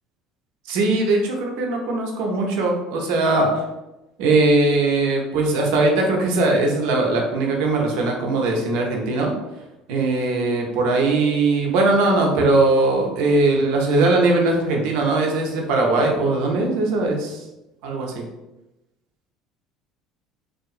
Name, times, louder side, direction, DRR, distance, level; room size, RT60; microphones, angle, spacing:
voice 1, 0.7-3.6 4.2-9.3 9.9-17.4 17.8-18.2, right 2 dB, 75° right, 1 dB, 0.5 m, -20 dB
2.7 x 2.4 x 2.4 m, 0.99 s
hypercardioid pair, 80°, 0 cm